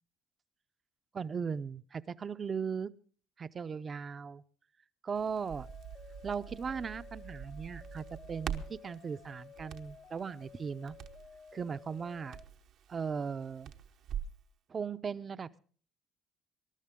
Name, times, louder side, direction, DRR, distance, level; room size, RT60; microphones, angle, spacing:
voice 1, 1.1-2.9 3.4-4.4 5.0-5.7 6.2-11.0 11.5-12.4 12.9-13.7 14.7-15.6, right 6 dB, 35° right, 15 dB, 0.6 m, -38 dB
Crackle, 5.2-14.4, right 8 dB, 65° right, 0.9 m, -45 dB
sound 1, 5.4-12.4, left 7 dB, 45° left, 0.6 m, -55 dB
21.0 x 12.0 x 3.7 m, 0.42 s
supercardioid pair, 90°, 0 cm